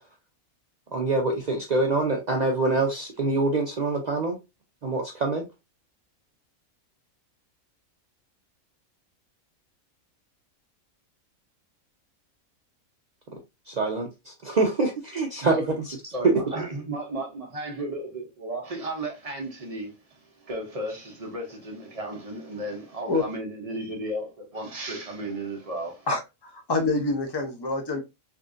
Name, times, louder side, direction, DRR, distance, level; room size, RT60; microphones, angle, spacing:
voice 1, 0.9-4.4 4.8-5.4 13.7-16.1, right 3 dB, 75° right, 0.4 m, -25 dB
voice 2, 16.1-26.1, right 1 dB, 35° right, 0.7 m, -34 dB
voice 3, 26.1-28.0, left 3 dB, 30° left, 0.5 m, -26 dB
3.5 x 2.5 x 2.5 m
omnidirectional pair, 1.5 m